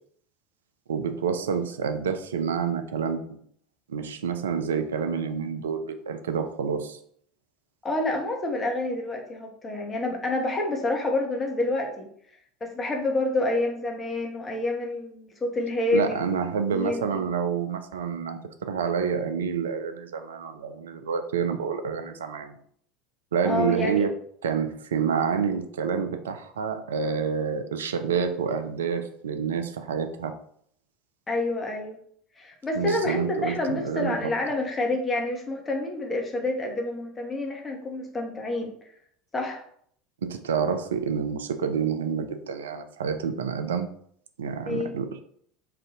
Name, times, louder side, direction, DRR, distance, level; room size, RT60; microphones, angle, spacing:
voice 1, 0.9-3.4 3.9-7.0 15.9-22.6 23.3-24.1 24.4-30.3 32.7-34.3 40.2-43.9 44.4-45.1, right 6 dB, 70° right, 8 dB, 0.4 m, -28 dB
voice 2, 7.8-12.1 12.6-16.4 16.7-17.0 23.4-24.0 31.3-32.0 32.4-38.7 39.3-39.6 44.7-44.9, left 2 dB, 20° left, 1 dB, 1.0 m, -28 dB
3.3 x 2.6 x 3.8 m, 0.64 s
figure-of-eight pair, 70°, 0 cm